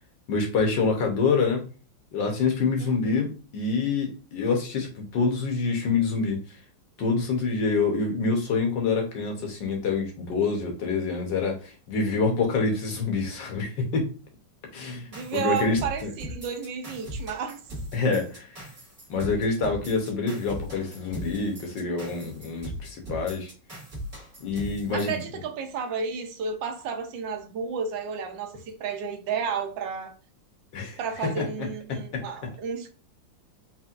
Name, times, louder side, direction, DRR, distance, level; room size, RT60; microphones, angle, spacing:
voice 1, 0.3-1.6 2.1-6.4 7.0-14.1 14.7-16.1 17.9-18.5 19.1-23.5 24.4-25.2 30.7-31.5 31.9-32.2, left 4 dB, 70° left, 1.7 m, -26 dB
voice 2, 2.8-3.2 15.1-17.6 24.9-30.2 31.0-32.9, right 6 dB, 75° right, 1.3 m, -32 dB
sound 1, 15.1-25.2, equal, 25° right, 1.6 m, -39 dB
4.4 x 3.3 x 2.5 m
omnidirectional pair, 2.1 m